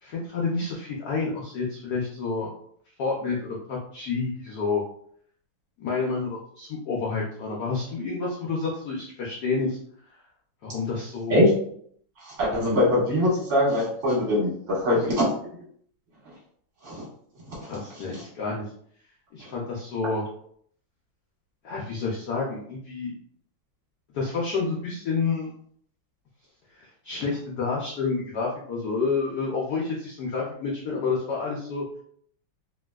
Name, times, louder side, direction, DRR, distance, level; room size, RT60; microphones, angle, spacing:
voice 1, 0.0-2.5 3.0-4.8 5.8-9.8 10.6-11.4 17.6-18.6 19.3-20.2 21.6-23.1 24.1-25.5 26.8-31.8, left 4 dB, 80° left, -3 dB, 0.8 m, -29 dB
voice 2, 12.2-15.2 16.8-17.1 17.5-17.6 18.1-18.2 19.4-19.5, left 1 dB, 40° right, -7 dB, 1.2 m, -22 dB
3.1 x 2.8 x 2.2 m, 0.63 s
omnidirectional pair, 2.4 m